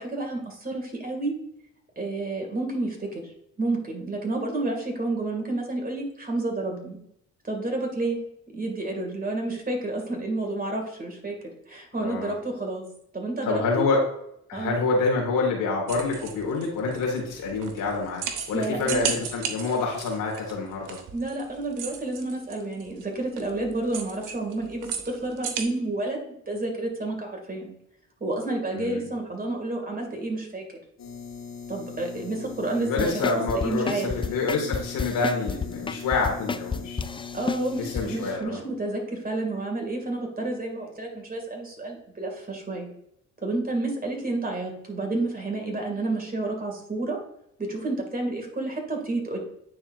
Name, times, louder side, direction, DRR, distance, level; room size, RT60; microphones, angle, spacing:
voice 1, 0.0-1.3 2.0-3.1 3.6-7.0 7.4-8.2 8.5-11.3 11.7-12.8 13.1-13.9 14.5-14.8 18.5-19.1 21.1-27.7 28.2-30.6 31.7-34.1 37.3-42.9 43.4-47.2 47.6-49.4, right 2 dB, 25° right, 2 dB, 2.5 m, -30 dB
voice 2, 12.0-12.3 13.4-14.0 14.5-21.0 28.7-29.0 32.8-37.0 37.8-38.6, left 3 dB, 80° left, 0 dB, 2.1 m, -27 dB
sound 1, 15.9-25.6, right 7 dB, 70° right, 1.0 m, -36 dB
sound 2, 31.0-38.3, left 5 dB, 55° left, 2.2 m, -40 dB
sound 3, 33.0-38.0 38.4-38.5, left 5 dB, 15° left, 0.4 m, -31 dB
9.3 x 4.3 x 2.6 m, 0.74 s
supercardioid pair, 65°, 32 cm